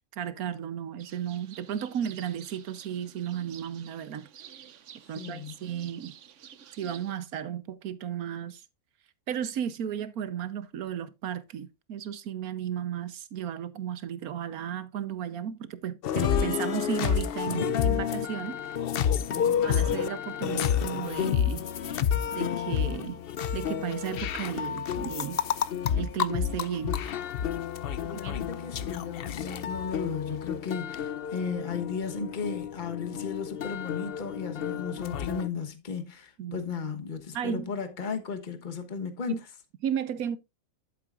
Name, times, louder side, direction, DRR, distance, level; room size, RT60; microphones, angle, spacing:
voice 1, 0.2-4.3 5.1-6.1 6.8-8.6 9.3-18.6 19.6-21.7 22.3-23.2 23.5-25.4 26.0-27.0 28.1-28.3 36.4-36.6 37.3-37.7 39.3-39.4 39.8-40.4, right 9 dB, 90° right, 1.4 m, -34 dB
sound 1, 1.0-7.2, right 9 dB, 60° right, 1.1 m, -50 dB
voice 2, 5.1-5.5 19.2-19.7 28.0-39.4, left 5 dB, 35° left, 1.3 m, -35 dB
sound 2, 16.0-35.5, left 8 dB, 60° left, 0.6 m, -30 dB
11.0 x 8.4 x 2.4 m
omnidirectional pair, 1.5 m